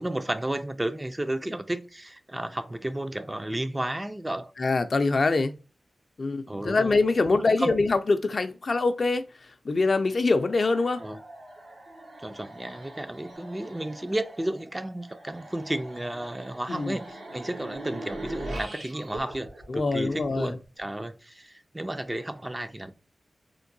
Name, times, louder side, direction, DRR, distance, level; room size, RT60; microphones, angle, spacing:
voice 1, 0.0-4.5 6.5-6.9 7.6-7.7 11.0-11.2 12.2-22.9, right 1 dB, 20° right, 0.4 m, -32 dB
voice 2, 4.6-5.5 6.2-11.0 16.7-17.0 19.7-20.6, left 3 dB, 55° left, 0.4 m, -24 dB
sound 1, 10.4-20.6, right 1 dB, 90° right, 1.1 m, -42 dB
3.6 x 2.6 x 2.6 m
wide cardioid pair, 75°, 0 cm